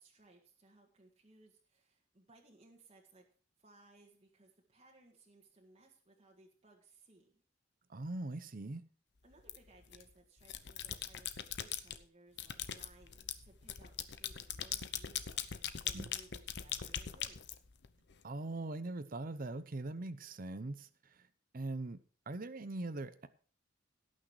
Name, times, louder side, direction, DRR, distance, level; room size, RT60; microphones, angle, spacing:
voice 1, 0.0-3.2 3.6-7.4 9.2-17.4, right 2 dB, 35° right, 1.9 m, -63 dB
voice 2, 7.9-8.8 15.9-16.1 18.2-20.9 21.5-22.0 22.3-23.3, right 2 dB, 50° right, 0.8 m, -41 dB
sound 1, 9.5-10.0 10.4-12.0 12.4-18.1, left 9 dB, 65° left, 0.9 m, -41 dB
17.5 x 6.5 x 4.8 m
head